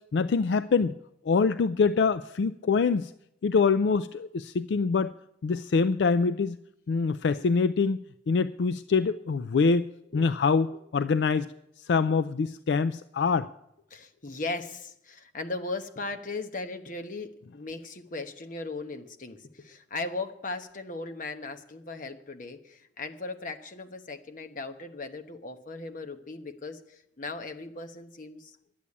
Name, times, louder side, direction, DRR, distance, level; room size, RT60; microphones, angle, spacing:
voice 1, 0.1-0.9 1.2-3.1 3.4-5.1 5.4-6.6 6.9-9.9 10.1-11.5 11.8-13.5, left 4 dB, 75° left, 12 dB, 0.4 m, -25 dB
voice 2, 13.9-28.6, left 3 dB, 50° left, 7 dB, 1.1 m, -38 dB
11.5 x 8.4 x 8.4 m, 0.78 s
head